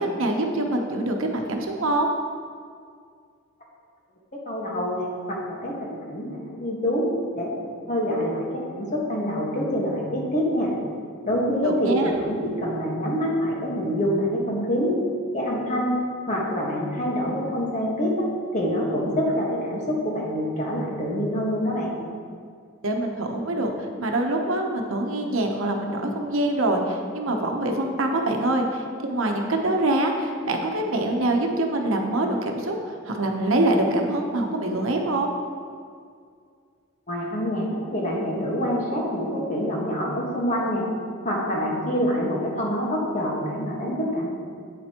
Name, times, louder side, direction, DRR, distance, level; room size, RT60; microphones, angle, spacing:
voice 1, 0.0-2.1 11.6-12.1 22.8-32.8 33.1-35.3, right 1 dB, 85° right, 2 dB, 0.9 m, -24 dB
voice 2, 4.5-7.1 7.3-7.6 7.9-10.7 11.2-15.0 15.3-15.9 16.3-21.9 37.1-40.8 41.2-44.3, equal, 35° left, -3 dB, 1.4 m, -26 dB
8.5 x 7.7 x 2.9 m, 2.2 s
head